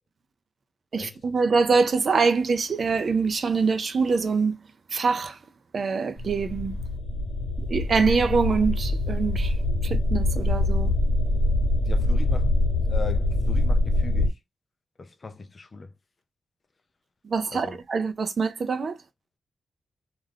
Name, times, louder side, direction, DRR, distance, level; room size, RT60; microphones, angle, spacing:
voice 1, 0.9-4.6 4.9-5.4 5.7-6.8 7.7-9.5 9.8-10.9 17.2-19.0, right 4 dB, 40° right, 0.4 m, -24 dB
sound 1, 6.2-14.3, left 1 dB, 60° left, 0.9 m, -24 dB
voice 2, 11.8-12.6 12.8-14.4 15.0-15.9 17.5-17.8, left 4 dB, 30° left, 0.4 m, -39 dB
2.4 x 2.3 x 3.2 m
wide cardioid pair, 155°, 0 cm